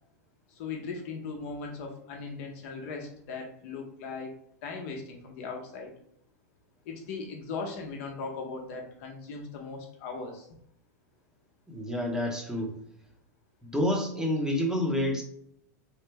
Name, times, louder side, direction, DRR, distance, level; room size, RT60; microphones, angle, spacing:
voice 1, 0.5-4.3 4.6-5.9 6.8-10.5, left 4 dB, 55° left, 2 dB, 0.8 m, -38 dB
voice 2, 11.7-12.7 13.6-15.2, left 1 dB, 5° right, -1 dB, 0.8 m, -28 dB
3.1 x 2.0 x 3.4 m, 0.71 s
hypercardioid pair, 120°, 9 cm